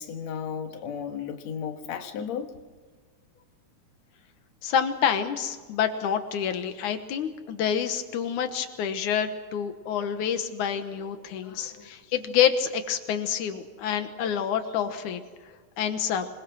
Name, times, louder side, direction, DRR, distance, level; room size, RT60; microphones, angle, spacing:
voice 1, 0.0-2.5 11.4-11.9, left 7 dB, 65° left, 5 dB, 2.7 m, -35 dB
voice 2, 4.6-15.2 15.8-16.3, left 8 dB, 85° left, 8 dB, 2.7 m, -27 dB
26.5 x 21.5 x 6.1 m, 1.4 s
omnidirectional pair, 3.4 m